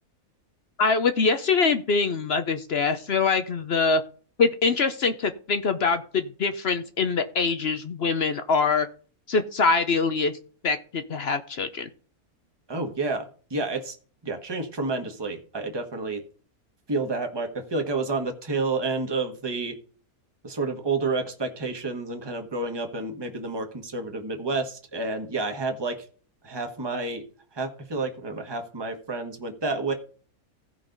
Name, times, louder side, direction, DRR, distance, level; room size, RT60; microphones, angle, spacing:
voice 1, 0.8-4.0 4.4-8.9 9.3-10.3 10.6-11.9, left 4 dB, 55° left, 10 dB, 0.8 m, -24 dB
voice 2, 12.7-13.9 14.2-16.2 16.9-19.8 20.4-25.9 26.4-27.2 27.5-29.9, right 3 dB, 20° right, 5 dB, 1.2 m, -29 dB
16.0 x 5.4 x 3.9 m, 0.42 s
omnidirectional pair, 1.6 m